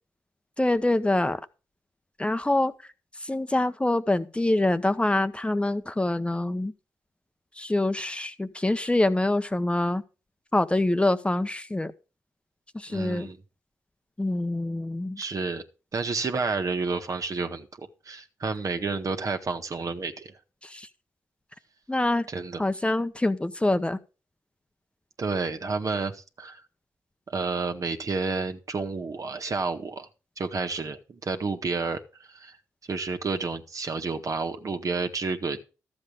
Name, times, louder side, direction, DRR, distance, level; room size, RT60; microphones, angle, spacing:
voice 1, 0.6-1.4 2.2-2.7 3.2-6.7 7.6-10.0 10.5-11.9 12.7-13.3 14.2-15.2 20.6-20.9 21.9-22.3 22.6-24.0, left 2 dB, 15° left, 1.0 m, -25 dB
voice 2, 12.9-13.4 15.2-15.6 15.9-20.3 22.3-22.6 25.2-26.6 27.3-30.1 30.4-32.6 32.9-35.6, right 4 dB, 50° right, 1.7 m, -30 dB
13.0 x 7.7 x 5.2 m
supercardioid pair, 45°, 7 cm